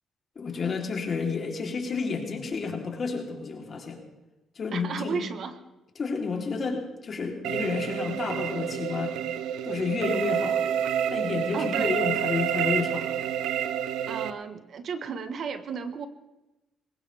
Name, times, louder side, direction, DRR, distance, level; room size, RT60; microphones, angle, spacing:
voice 1, 0.4-4.0 4.6-5.2 6.0-9.2 9.6-10.7 11.1-13.1, left 5 dB, 45° left, 1 dB, 3.5 m, -30 dB
voice 2, 4.7-5.6 11.5-12.0 14.1-16.1, right 5 dB, 60° right, 10 dB, 1.3 m, -34 dB
sound 1, 7.4-14.3, right 9 dB, 90° right, 0.7 m, -28 dB
21.5 x 18.5 x 3.5 m, 1.0 s
cardioid pair, 90°, 0 cm